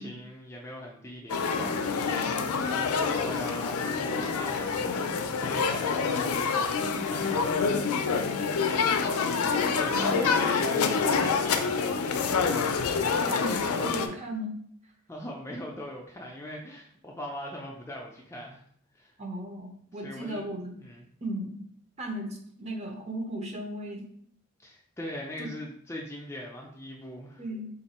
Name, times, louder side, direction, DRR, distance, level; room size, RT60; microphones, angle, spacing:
voice 1, 0.0-7.4 7.8-8.1 9.8-12.2 15.1-18.6 18.9-19.1 19.9-20.4 20.8-21.1 24.6-27.4, equal, 10° left, -1 dB, 0.4 m, -41 dB
sound 1, 1.3-14.1, left 5 dB, 85° left, 0.4 m, -27 dB
voice 2, 9.7-10.9 13.2-14.5 19.2-20.7 21.2-21.6 22.0-24.1 25.4-25.5 27.4-27.7, right 1 dB, 30° right, 2 dB, 0.6 m, -36 dB
3.6 x 2.5 x 4.1 m, 0.66 s
head